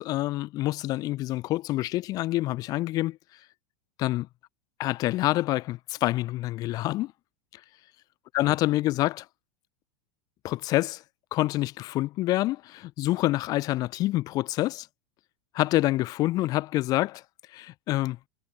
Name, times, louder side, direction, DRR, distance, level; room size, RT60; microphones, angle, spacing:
voice 1, 0.0-3.2 4.0-4.3 4.8-7.1 8.3-9.3 10.4-11.0 11.3-14.9 15.5-17.2 17.5-18.2, left 17 dB, 45° left, 0.6 m, -27 dB
hypercardioid pair, 95°, 9 cm